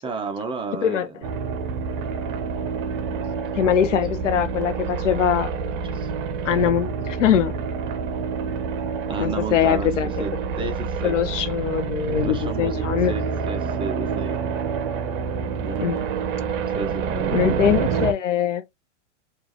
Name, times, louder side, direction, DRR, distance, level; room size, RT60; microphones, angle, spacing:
voice 1, 0.0-1.2 3.1-3.7 5.9-6.1 9.1-10.3 10.6-11.1 12.2-14.4 15.6-15.9 16.7-17.9, right 4 dB, 15° right, 0.7 m, -32 dB
sound 1, 1.2-18.1, right 6 dB, 45° right, 0.9 m, -27 dB
voice 2, 3.5-5.5 6.4-7.5 9.2-10.1 11.0-13.1 15.8-16.0 17.3-18.6, left 9 dB, 80° left, 0.9 m, -22 dB
4.4 x 2.6 x 2.8 m
hypercardioid pair, 125°, 37 cm